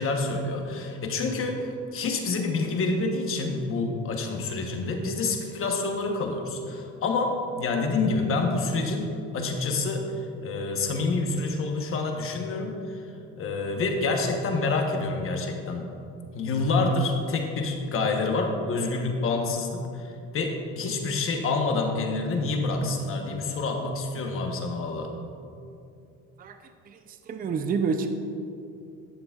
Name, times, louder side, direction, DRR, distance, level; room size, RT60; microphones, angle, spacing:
voice 1, 0.0-13.0 13.4-15.9 16.3-25.1, left 3 dB, 45° left, 3 dB, 1.0 m, -27 dB
voice 2, 27.3-28.1, right 5 dB, 30° right, 7 dB, 0.5 m, -27 dB
11.0 x 6.8 x 2.4 m, 2.6 s
cardioid pair, 110°, 30 cm